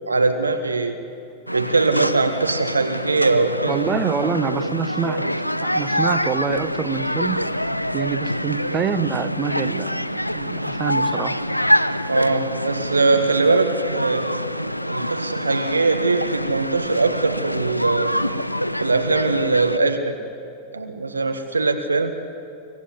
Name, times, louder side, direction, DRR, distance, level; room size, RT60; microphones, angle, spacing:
voice 1, 0.1-1.0 1.5-3.8 12.1-14.3 14.9-18.2 18.8-20.2 20.7-22.1, right 3 dB, 80° right, 6 dB, 1.5 m, -21 dB
sound 1, 1.5-19.8, equal, 90° left, 0.6 m, -25 dB
voice 2, 3.7-5.3 5.6-7.5 7.9-10.0 10.3-11.4, right 6 dB, 25° right, 10 dB, 1.2 m, -26 dB
25.0 x 16.5 x 9.6 m, 2.6 s
figure-of-eight pair, 90°, 0 cm